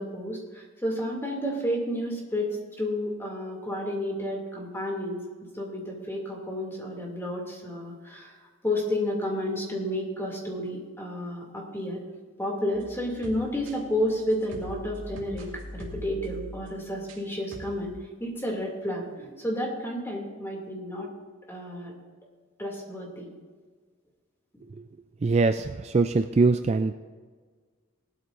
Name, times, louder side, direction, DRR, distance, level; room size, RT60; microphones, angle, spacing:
voice 1, 0.0-5.2 5.5-8.3 8.6-12.0 12.4-17.9 18.2-21.1 21.5-21.9 22.6-23.3, left 1 dB, 10° left, -1 dB, 2.6 m, -31 dB
sound 1, 12.7-17.2 17.5-17.9, left 1 dB, 70° right, 2.2 m, -43 dB
voice 2, 25.2-26.9, right 3 dB, 30° right, 8 dB, 0.3 m, -23 dB
18.0 x 12.5 x 2.6 m, 1.5 s
head